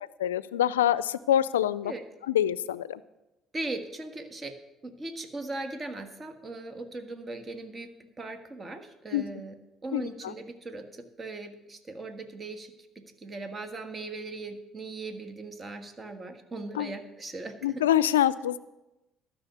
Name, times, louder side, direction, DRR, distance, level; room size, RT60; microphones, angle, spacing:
voice 1, 0.2-1.9 2.3-3.0 9.1-9.3 9.9-10.3 16.8-16.9 17.6-18.6, left 11 dB, 90° left, 18 dB, 0.4 m, -25 dB
voice 2, 3.5-4.6 4.8-9.5 9.8-12.7 13.2-17.9, right 2 dB, 35° right, 7 dB, 1.5 m, -39 dB
13.0 x 6.2 x 8.1 m, 0.98 s
hypercardioid pair, 55°, 0 cm